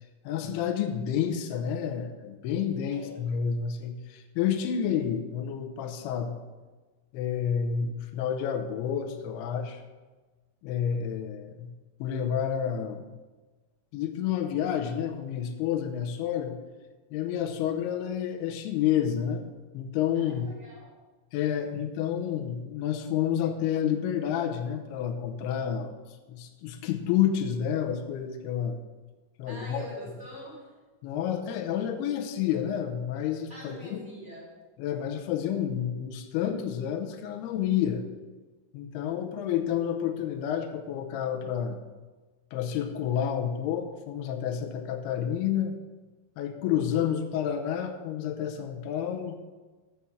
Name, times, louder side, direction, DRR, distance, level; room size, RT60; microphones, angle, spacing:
voice 1, 0.2-6.4 7.1-9.8 10.6-11.7 12.0-13.1 13.9-16.5 17.1-19.4 19.7-20.5 21.3-26.0 26.3-28.8 29.4-29.8 31.0-34.0 34.8-38.0 38.7-41.8 42.5-45.8 46.4-49.4, left 9 dB, 80° left, 5 dB, 2.5 m, -29 dB
voice 2, 20.1-21.0 29.4-30.7 33.5-34.5, right 1 dB, 40° right, -5 dB, 1.0 m, -44 dB
7.1 x 7.1 x 7.8 m, 1.3 s
omnidirectional pair, 5.3 m